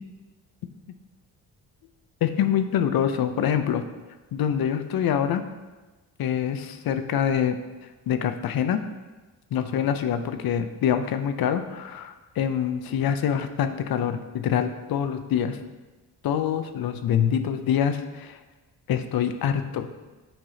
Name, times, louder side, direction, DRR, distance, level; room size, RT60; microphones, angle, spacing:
voice 1, 2.2-3.9 4.3-5.4 6.2-7.6 8.1-8.8 9.5-15.6 16.2-18.4 18.9-19.9, left 8 dB, 55° left, 9 dB, 0.6 m, -25 dB
7.7 x 4.6 x 2.8 m, 1.2 s
cardioid pair, 75°, 43 cm